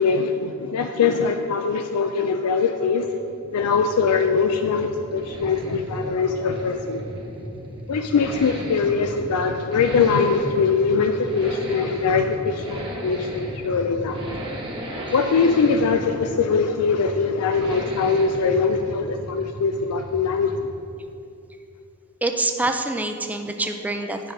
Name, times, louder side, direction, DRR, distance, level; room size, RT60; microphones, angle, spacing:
voice 1, 0.0-3.1 3.5-7.0 7.9-14.2 15.1-20.5, left 5 dB, 80° left, 6 dB, 0.4 m, -22 dB
Accelerating revving vroom, 2.7-20.8 21.1-21.2, equal, 25° right, 1.3 m, -35 dB
voice 2, 22.2-24.3, right 2 dB, 5° right, 5 dB, 0.3 m, -26 dB
10.0 x 4.6 x 5.0 m, 2.7 s
head